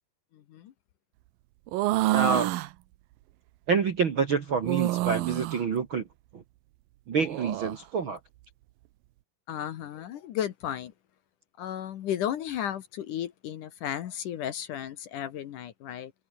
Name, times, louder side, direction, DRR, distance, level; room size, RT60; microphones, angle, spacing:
voice 1, 0.3-0.7 9.5-10.9 11.6-16.1, left 10 dB, 65° left, 2.5 m, -34 dB
sound 1, 1.7-2.7 4.6-5.6 7.1-7.8, right 17 dB, 75° right, 2.4 m, -27 dB
voice 2, 2.1-2.5 3.7-6.1 6.3-6.4 7.1-8.2, right 5 dB, 50° right, 1.5 m, -27 dB
omnidirectional pair, 4.5 m